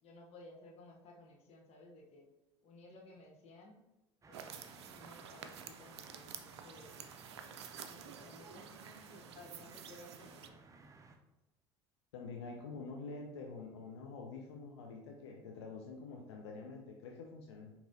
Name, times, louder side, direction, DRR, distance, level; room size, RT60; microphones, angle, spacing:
voice 1, 0.0-2.3 2.6-3.8 4.3-4.6 4.9-7.1 7.8-10.6, left 2 dB, 50° left, -1 dB, 1.1 m, -57 dB
sound 1, 4.2-11.2, right 3 dB, 25° right, 0.6 m, -59 dB
sound 2, 4.3-10.5, right 8 dB, 85° right, 0.4 m, -51 dB
voice 2, 12.1-17.7, left 4 dB, 85° left, 1 dB, 0.5 m, -47 dB
5.1 x 2.9 x 2.7 m, 0.95 s
hypercardioid pair, 70°, 14 cm